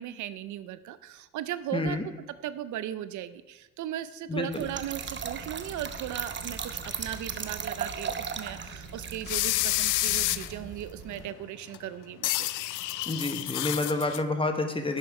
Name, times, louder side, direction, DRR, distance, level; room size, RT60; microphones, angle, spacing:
voice 1, 0.0-2.0 2.4-12.5, right 12 dB, 75° right, 14 dB, 0.6 m, -37 dB
voice 2, 1.7-2.0 4.3-4.5 13.1-15.0, left 2 dB, 15° left, 6 dB, 1.1 m, -28 dB
Trickle dribble / Fill (with liquid), 4.5-11.3, right 7 dB, 40° right, 0.8 m, -37 dB
sound 1, 5.4-6.6 6.8-6.9 7.3-7.5 8.0-8.1 8.7-8.8 9.0-9.1 9.3-10.7 11.1-11.4 11.7-11.8 12.2-14.2, left 16 dB, 85° left, 0.5 m, -29 dB
11.0 x 7.2 x 4.8 m, 1.1 s
cardioid pair, 90°, 30 cm